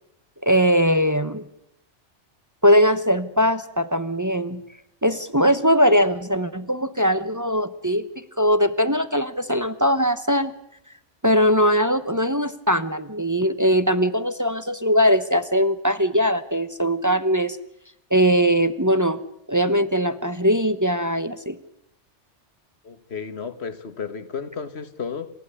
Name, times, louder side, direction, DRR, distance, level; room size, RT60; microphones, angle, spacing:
voice 1, 0.4-1.4 2.6-4.6 5.0-8.0 8.4-10.5 11.2-17.6 18.1-19.2 19.5-21.6, equal, 15° right, 0.9 m, -20 dB
voice 2, 22.8-25.3, left 6 dB, 60° left, 1.7 m, -33 dB
28.5 x 15.0 x 9.9 m
omnidirectional pair, 1.2 m